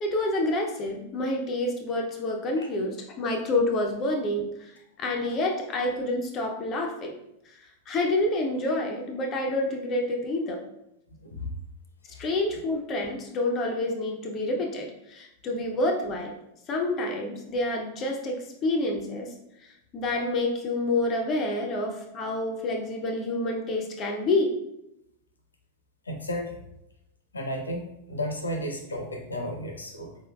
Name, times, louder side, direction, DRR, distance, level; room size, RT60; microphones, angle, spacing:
voice 1, 0.0-4.7 5.0-7.2 7.9-10.6 12.2-16.3 16.7-19.3 19.6-24.5, left 2 dB, 30° left, 2 dB, 0.5 m, -28 dB
voice 2, 11.2-11.5 12.1-12.2 26.1-26.6 27.3-27.8 28.1-30.2, left 1 dB, 75° left, 2 dB, 0.7 m, -33 dB
4.7 x 3.1 x 2.3 m, 0.84 s
figure-of-eight pair, 90°, 0 cm